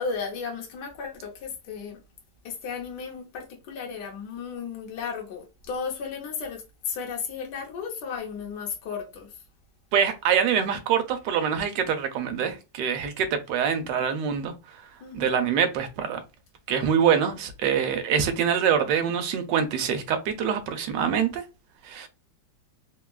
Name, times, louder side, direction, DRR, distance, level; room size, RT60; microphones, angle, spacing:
voice 1, 0.0-2.0 2.4-9.3 13.8-13.9 15.0-15.4, left 5 dB, 70° left, 1.3 m, -34 dB
voice 2, 9.9-14.5 15.1-16.2 16.7-21.4 21.8-22.1, right 7 dB, 75° right, 1.2 m, -25 dB
3.5 x 2.3 x 2.3 m
omnidirectional pair, 2.0 m